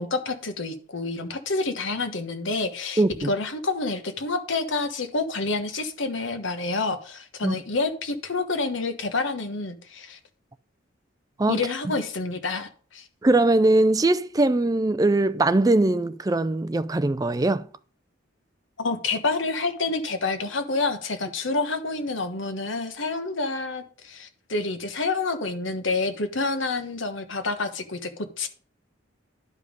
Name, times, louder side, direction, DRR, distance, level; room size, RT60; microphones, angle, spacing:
voice 1, 0.0-10.2 11.5-13.1 18.8-28.5, left 3 dB, 75° left, 1.2 m, -28 dB
voice 2, 3.0-3.3 7.4-7.6 11.4-11.6 13.2-17.7, right 2 dB, 20° right, 0.4 m, -21 dB
10.5 x 5.3 x 5.2 m
head